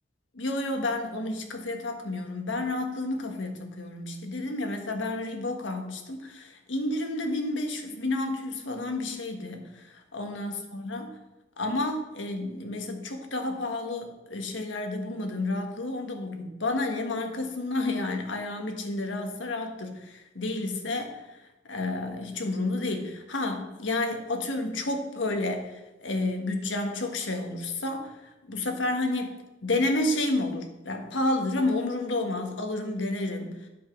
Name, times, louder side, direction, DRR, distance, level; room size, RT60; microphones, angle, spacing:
voice 1, 0.3-11.2 11.6-21.2 21.7-25.7 26.0-28.2 28.4-33.7, left 2 dB, 90° left, 4 dB, 1.5 m, -30 dB
9.3 x 7.3 x 5.9 m, 1.0 s
head